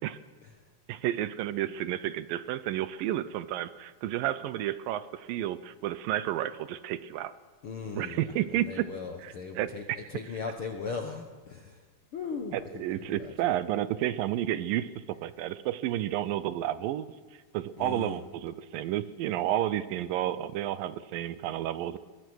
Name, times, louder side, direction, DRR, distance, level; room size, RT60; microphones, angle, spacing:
voice 1, 0.9-7.3 8.0-8.9 9.2-10.0 12.5-17.1 17.5-22.0, right 12 dB, 80° right, 15 dB, 2.3 m, -31 dB
voice 2, 7.6-13.3 17.8-18.2, left 5 dB, 60° left, 4 dB, 1.5 m, -39 dB
23.0 x 20.0 x 6.4 m, 1.4 s
omnidirectional pair, 4.2 m